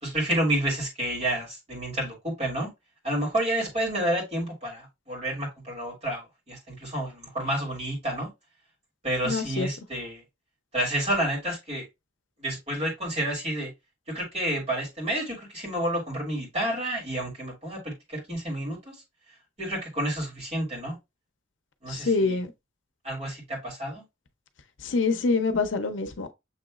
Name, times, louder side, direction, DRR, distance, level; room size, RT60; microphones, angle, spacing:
voice 1, 0.0-2.7 3.0-8.3 9.0-10.2 10.7-11.8 12.4-13.7 14.1-19.0 19.6-21.0 21.8-22.4 23.0-24.0, right 1 dB, 35° right, 2.3 m, -30 dB
voice 2, 9.2-9.7 21.9-22.5 24.8-26.3, left 4 dB, 80° left, 0.6 m, -26 dB
6.8 x 3.0 x 2.4 m
head